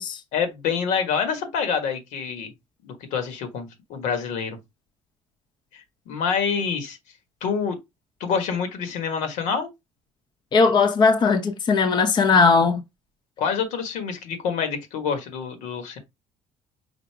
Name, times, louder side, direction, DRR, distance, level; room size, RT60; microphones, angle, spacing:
voice 1, 0.3-2.5 2.8-4.6 5.7-7.0 7.4-7.8 8.2-9.7 13.4-16.0, left 6 dB, 85° left, 1.5 m, -27 dB
voice 2, 10.5-12.8, left 4 dB, 40° left, 0.7 m, -18 dB
5.1 x 2.0 x 4.7 m
cardioid pair, 110°, 12 cm